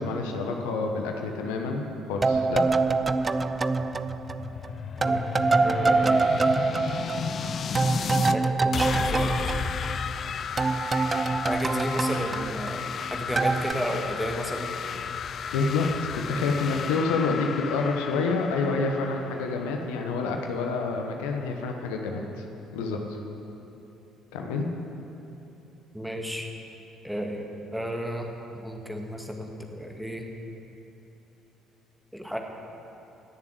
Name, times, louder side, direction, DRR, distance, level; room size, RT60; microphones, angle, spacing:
voice 1, 0.0-2.8 15.5-22.2 22.7-23.0 24.3-24.6, left 4 dB, 70° left, 3 dB, 1.2 m, -28 dB
sound 1, 2.2-4.7 5.0-10.3 10.6-13.0 13.4-13.7, right 3 dB, 25° right, 0.5 m, -25 dB
sound 2, 3.8-8.4 8.7-20.3, left 7 dB, 45° left, 0.4 m, -34 dB
voice 2, 5.6-6.4 8.1-9.5 11.4-14.7 25.9-26.5 27.0-30.3 32.1-32.4, equal, ahead, 1 dB, 1.9 m, -33 dB
17.5 x 7.3 x 7.8 m, 3.0 s
figure-of-eight pair, 50°, 0 cm